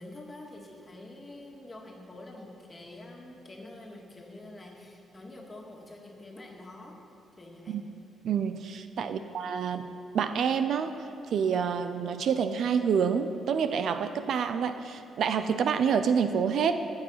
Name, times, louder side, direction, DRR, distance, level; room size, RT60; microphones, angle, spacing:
voice 1, 0.0-7.0 7.4-7.8 9.0-9.3, left 2 dB, 25° left, 0 dB, 2.0 m, -46 dB
voice 2, 8.2-9.9 10.1-10.9 11.3-16.8, right 7 dB, 65° right, 10 dB, 0.5 m, -27 dB
17.5 x 6.3 x 5.7 m, 2.6 s
cardioid pair, 90°, 0 cm